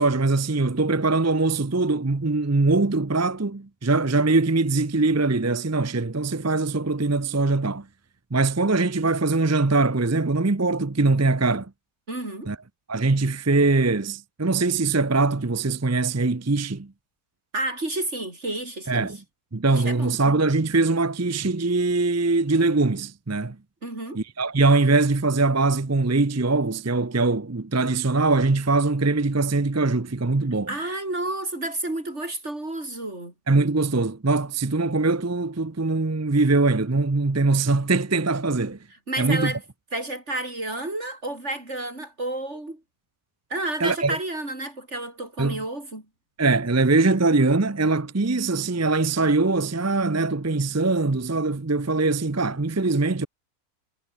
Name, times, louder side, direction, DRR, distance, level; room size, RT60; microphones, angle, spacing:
voice 1, 0.0-7.9 8.3-11.7 12.5-12.6 12.9-16.9 18.9-19.2 19.5-23.6 24.1-30.7 33.5-38.8 39.2-39.5 43.8-44.2 45.4-45.6 46.4-53.3, right 3 dB, 20° right, 0.4 m, -22 dB
voice 2, 12.1-12.5 17.5-19.1 19.7-20.2 23.8-24.2 30.7-33.3 39.1-39.6 39.9-42.8 43.5-46.0, right 2 dB, 50° right, 6.3 m, -30 dB
omnidirectional pair, 1.6 m